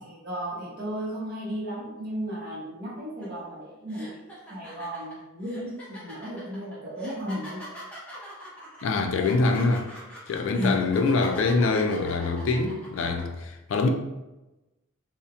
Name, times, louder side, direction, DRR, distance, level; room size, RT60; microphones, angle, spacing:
voice 1, 0.0-4.2 4.5-7.6 10.6-10.8, equal, 45° right, 0.6 m, -34 dB
sound 1, 3.2-3.4 3.9-13.2, right 1 dB, 5° left, 0.6 m, -42 dB
voice 2, 8.8-9.9 10.3-13.9, left 3 dB, 65° left, 0.3 m, -24 dB
2.7 x 2.0 x 2.4 m
head